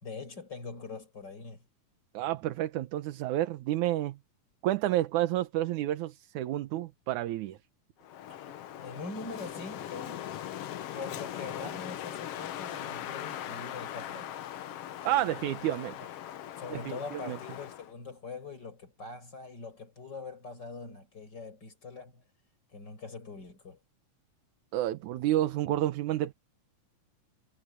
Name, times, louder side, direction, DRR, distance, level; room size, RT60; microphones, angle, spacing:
voice 1, 0.0-1.6 8.3-8.5 8.8-10.3 10.9-14.4 16.5-22.2 22.7-23.8, left 4 dB, 30° left, 5.9 m, -43 dB
voice 2, 2.1-4.2 4.6-7.6 15.0-16.0 16.7-17.4 24.7-26.3, right 14 dB, 75° right, 2.3 m, -30 dB
Wind, 8.0-17.9, left 11 dB, 65° left, 1.5 m, -40 dB
omnidirectional pair, 3.7 m